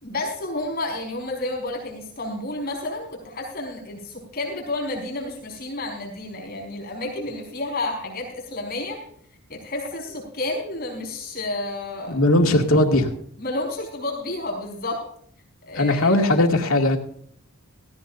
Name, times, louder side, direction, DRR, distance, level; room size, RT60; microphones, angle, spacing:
voice 1, 0.0-9.0 9.5-12.2 13.4-15.0 15.7-16.4, left 2 dB, 45° left, -1 dB, 5.0 m, -30 dB
voice 2, 12.1-13.1 15.8-17.0, left 1 dB, 90° left, 3 dB, 2.2 m, -18 dB
18.0 x 16.0 x 2.6 m, 0.63 s
head